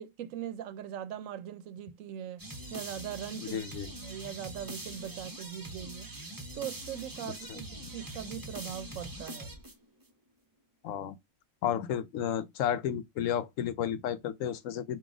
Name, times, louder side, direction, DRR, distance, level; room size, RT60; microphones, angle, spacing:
voice 1, 0.0-2.4 2.7-6.1 6.5-9.5, right 10 dB, 85° right, 1.0 m, -41 dB
sound 1, 2.4-10.0, right 1 dB, 20° right, 0.8 m, -43 dB
voice 2, 3.4-3.9 7.3-7.6 10.8-11.2 11.6-15.0, left 9 dB, 85° left, 1.0 m, -32 dB
4.0 x 2.6 x 4.8 m
omnidirectional pair, 1.3 m